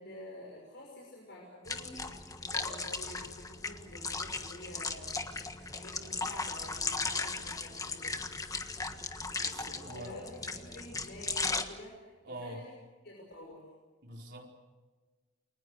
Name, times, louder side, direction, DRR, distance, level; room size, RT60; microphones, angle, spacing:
voice 1, 0.0-2.2 2.5-5.1 5.6-8.3 9.9-12.7 13.0-13.7, left 1 dB, 60° left, -2 dB, 6.2 m, -49 dB
sound 1, 1.7-11.6, left 3 dB, 20° left, 1.4 m, -37 dB
voice 2, 9.4-10.2 12.2-12.6 14.0-14.6, right 1 dB, 65° right, -1 dB, 4.9 m, -45 dB
29.0 x 23.0 x 6.6 m, 1.3 s
head